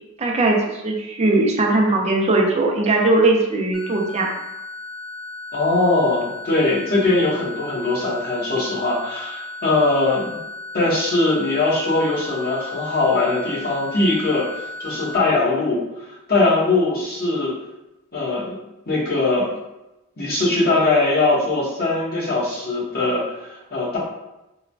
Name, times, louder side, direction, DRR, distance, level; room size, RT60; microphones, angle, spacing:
voice 1, 0.2-4.3, right 2 dB, 30° right, 0 dB, 0.4 m, -19 dB
sound 1, 3.7-15.2, left 2 dB, 25° left, 0.9 m, -35 dB
voice 2, 5.5-10.4 10.7-17.5 18.1-18.6 18.8-19.5 20.2-24.0, left 2 dB, 45° left, -7 dB, 0.9 m, -21 dB
3.0 x 2.1 x 2.6 m, 0.95 s
head